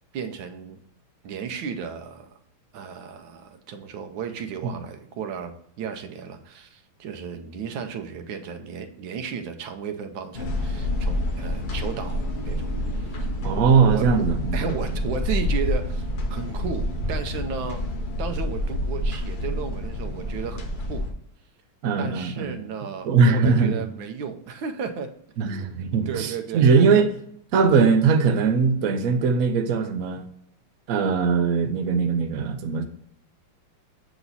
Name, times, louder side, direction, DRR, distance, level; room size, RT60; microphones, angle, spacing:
voice 1, 0.1-0.8 1.2-2.4 2.7-13.2 13.8-14.2 14.5-17.8 18.2-21.1 22.0-25.1 26.1-26.7, right 6 dB, 80° right, 6 dB, 1.4 m, -34 dB
sound 1, 10.3-21.1, left 1 dB, 55° left, 0.5 m, -28 dB
voice 2, 13.4-14.7 21.8-22.6 23.0-23.8 25.4-27.1 27.5-30.2 30.9-32.8, right 5 dB, 60° right, 5 dB, 0.9 m, -20 dB
7.9 x 3.0 x 3.9 m, 0.68 s
omnidirectional pair, 2.2 m